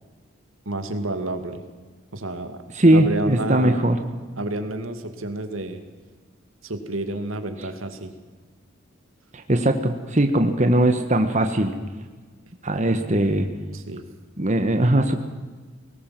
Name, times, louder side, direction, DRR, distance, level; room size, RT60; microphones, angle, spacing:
voice 1, 0.7-1.6 2.1-2.6 2.9-3.8 4.4-5.8 6.6-8.1 13.7-14.0, right 1 dB, 85° right, 7 dB, 2.4 m, -30 dB
voice 2, 2.8-4.0 9.3-11.7 12.6-13.5 14.4-15.2, right 1 dB, 35° right, 6 dB, 1.5 m, -20 dB
21.5 x 19.0 x 7.8 m, 1.4 s
head